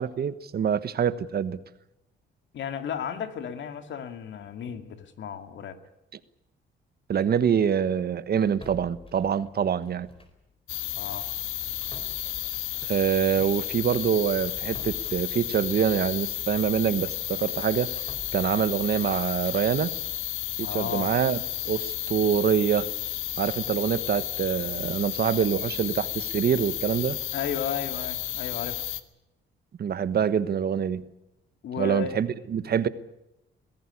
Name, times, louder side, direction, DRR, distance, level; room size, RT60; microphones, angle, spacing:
voice 1, 0.0-1.6 7.1-10.1 12.8-17.9 18.3-19.9 20.6-22.9 23.4-27.2 29.8-31.1 31.8-32.9, right 8 dB, 55° right, 14 dB, 1.3 m, -25 dB
voice 2, 2.5-5.8 11.0-11.3 20.6-21.1 27.3-28.8 31.6-32.2, left 8 dB, 70° left, 8 dB, 2.3 m, -34 dB
sound 1, 8.4-10.5 10.7-10.9 11.5-16.8 17.2-20.3, left 3 dB, 25° left, 4.6 m, -50 dB
sound 2, 10.7-29.0, left 13 dB, 90° left, 1.4 m, -32 dB
23.0 x 16.0 x 9.8 m, 0.88 s
cardioid pair, 90°, 20 cm